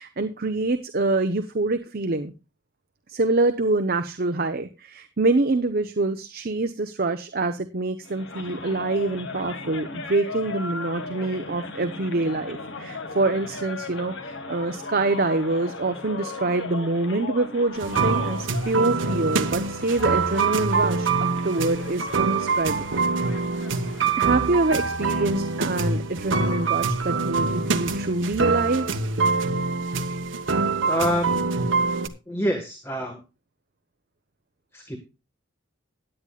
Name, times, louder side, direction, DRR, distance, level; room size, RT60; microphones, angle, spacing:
voice 1, 0.0-2.3 3.1-23.0 24.2-28.9, right 2 dB, 50° right, 8 dB, 0.8 m, -25 dB
sound 1, 8.0-24.3, left 3 dB, 70° left, 1.7 m, -37 dB
sound 2, 17.7-32.1, right 4 dB, 75° right, 1.2 m, -25 dB
voice 2, 30.9-31.5 32.3-33.2 34.7-35.0, equal, 15° left, 4 dB, 1.5 m, -26 dB
16.5 x 10.0 x 2.3 m, 0.29 s
head